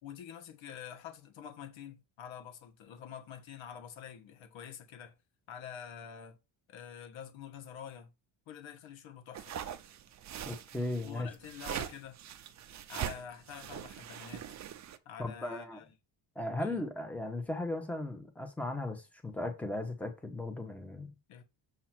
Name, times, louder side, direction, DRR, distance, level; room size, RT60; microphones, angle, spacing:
voice 1, 0.0-5.1 5.5-6.4 6.7-8.1 8.5-9.5 11.0-12.2 12.9-14.5 15.0-15.9 16.6-16.8 21.3-21.4, left 8 dB, 75° left, 1.5 m, -47 dB
sound 1, 9.3-15.0, right 10 dB, 40° right, 0.5 m, -42 dB
voice 2, 10.4-11.3 15.2-15.8 16.3-21.1, left 2 dB, 5° left, 1.0 m, -37 dB
7.3 x 2.8 x 6.0 m
cardioid pair, 160°, 47 cm